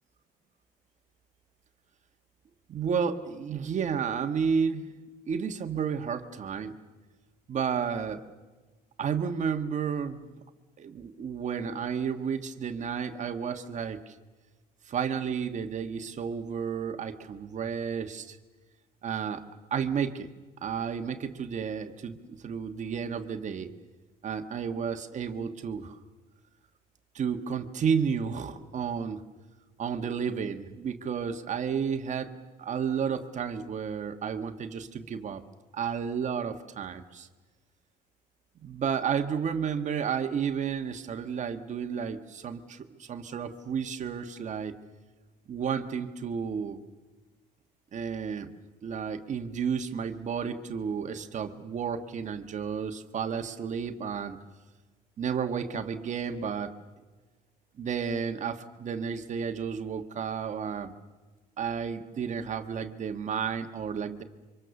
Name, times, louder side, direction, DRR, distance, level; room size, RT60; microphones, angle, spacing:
voice 1, 2.7-4.9 5.3-6.7 7.5-8.2 9.0-10.3 10.8-14.1 14.9-18.4 19.0-19.4 19.7-20.3 20.6-23.7 24.2-26.0 27.1-29.2 29.8-35.4 35.7-37.3 38.6-44.8 45.5-46.8 47.9-48.5 48.8-54.4 55.2-56.8 57.8-60.9 61.6-64.2, right 7 dB, 45° right, 7 dB, 1.4 m, -32 dB
27.5 x 25.0 x 7.0 m, 1.3 s
cardioid pair, 110°, 17 cm